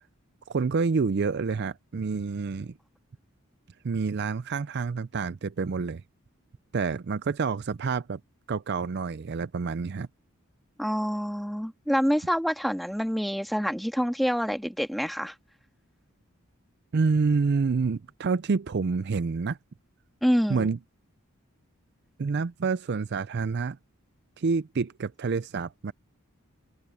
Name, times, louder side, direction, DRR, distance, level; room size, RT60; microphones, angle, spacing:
voice 1, 0.5-2.7 3.8-6.0 6.7-8.2 8.5-10.1 16.9-19.6 20.5-20.8 22.2-23.8 24.4-25.9, right 4 dB, 50° right, 0.4 m, -28 dB
voice 2, 10.8-15.3 20.2-20.7, equal, ahead, 1.5 m, -27 dB
head